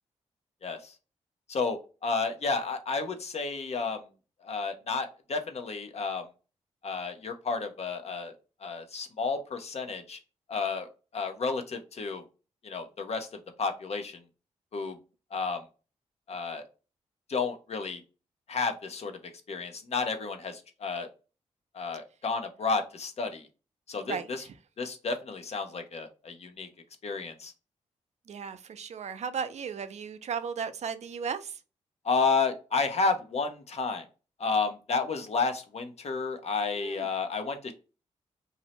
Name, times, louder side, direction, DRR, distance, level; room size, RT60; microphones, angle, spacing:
voice 1, 0.6-0.9 1.5-4.0 4.4-6.2 6.8-8.3 8.6-10.2 10.5-12.2 12.6-13.3 13.6-14.2 14.7-15.0 15.3-15.6 16.3-16.6 17.3-18.0 18.5-19.2 19.5-21.1 21.7-23.5 23.9-24.4 24.8-26.7 27.0-27.5 32.0-34.1 34.4-37.7, left 4 dB, 55° left, 0.6 m, -31 dB
voice 2, 24.1-24.5 28.3-31.6 36.7-37.1, right 6 dB, 60° right, 0.4 m, -36 dB
2.6 x 2.0 x 2.9 m
cardioid pair, 55°, 13 cm